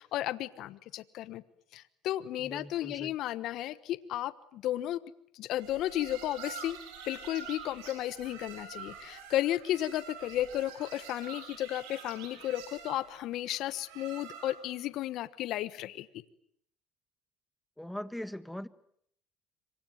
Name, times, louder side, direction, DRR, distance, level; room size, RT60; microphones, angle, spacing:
voice 1, 0.0-1.4 1.7-5.0 5.3-6.8 7.1-16.1, left 13 dB, 65° left, 16 dB, 1.2 m, -34 dB
voice 2, 2.4-3.2 17.8-18.7, left 1 dB, 5° left, 14 dB, 1.6 m, -41 dB
sound 1, 5.6-14.8, right 6 dB, 85° right, 7.6 m, -47 dB
26.5 x 24.5 x 9.3 m, 0.68 s
supercardioid pair, 90°, 0 cm